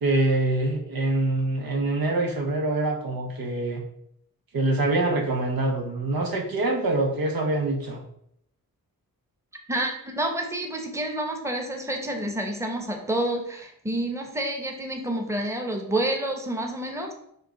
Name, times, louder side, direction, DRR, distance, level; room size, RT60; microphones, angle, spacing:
voice 1, 0.0-3.8 4.5-8.0, right 2 dB, 85° right, 1 dB, 1.3 m, -25 dB
voice 2, 9.7-17.1, right 1 dB, 10° right, 3 dB, 0.9 m, -29 dB
5.8 x 3.1 x 5.1 m, 0.73 s
wide cardioid pair, 120°, 35 cm